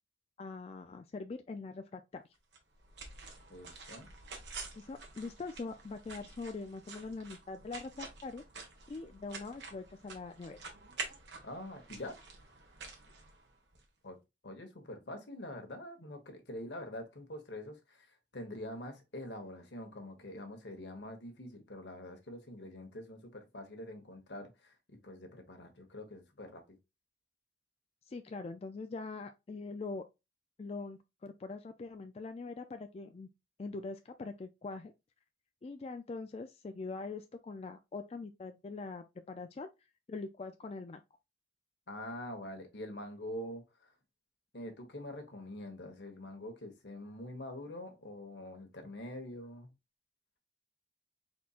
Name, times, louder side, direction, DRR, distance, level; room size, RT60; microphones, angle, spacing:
voice 1, 0.4-2.2 4.8-8.4 8.9-10.6 28.1-30.0 30.6-33.3 33.6-34.9 35.6-39.7 40.1-41.0, left 3 dB, 35° left, 0.3 m, -43 dB
sound 1, 2.5-13.8, right 4 dB, 75° right, 1.4 m, -48 dB
voice 2, 3.5-4.1 11.4-12.2 14.0-14.2 14.4-26.8 41.9-43.9 44.5-49.7, left 1 dB, 75° left, 1.3 m, -45 dB
4.3 x 4.2 x 2.4 m
head